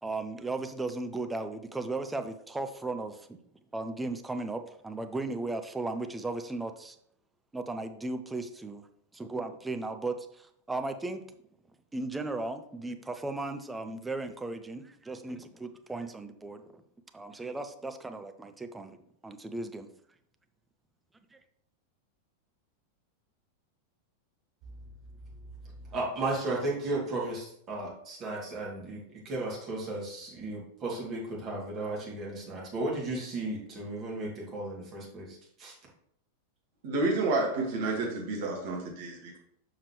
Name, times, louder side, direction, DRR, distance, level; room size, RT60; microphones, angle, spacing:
voice 1, 0.0-3.4 3.7-7.0 7.5-8.9 9.1-11.2 11.9-16.8 17.1-19.0 19.2-19.9, right 2 dB, 10° right, 7 dB, 0.6 m, -36 dB
voice 2, 25.9-35.7, right 2 dB, 30° right, -4 dB, 2.6 m, -35 dB
voice 3, 36.8-39.4, right 3 dB, 50° right, 0 dB, 1.8 m, -30 dB
6.8 x 5.7 x 3.2 m, 0.70 s
figure-of-eight pair, 90°, 0 cm